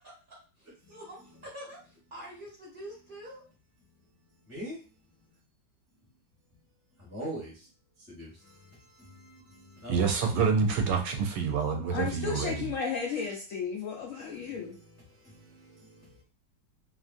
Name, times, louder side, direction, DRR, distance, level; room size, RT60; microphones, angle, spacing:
voice 1, 0.0-3.4, equal, 35° right, 0.9 m, -46 dB
voice 2, 0.8-1.4 4.0-4.8 5.2-5.4 6.9-7.7 8.1-10.0 11.4-11.7 14.1-16.2, right 1 dB, 15° left, 0.5 m, -45 dB
voice 3, 9.9-12.7, right 5 dB, 75° right, 1.2 m, -27 dB
voice 4, 11.9-14.8, left 5 dB, 85° left, 0.7 m, -34 dB
3.0 x 2.5 x 2.5 m
omnidirectional pair, 2.0 m